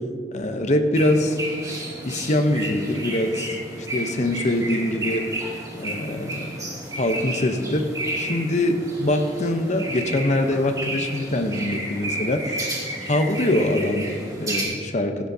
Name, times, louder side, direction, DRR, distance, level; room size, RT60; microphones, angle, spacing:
voice 1, 0.3-1.4 2.0-3.5 3.9-5.3 5.8-6.5 7.0-7.9 8.2-12.7 13.1-15.3, left 1 dB, 40° left, 6 dB, 0.8 m, -23 dB
sound 1, 0.9-14.6, right 1 dB, 20° right, 2.5 m, -32 dB
16.5 x 12.0 x 2.8 m, 2.1 s
head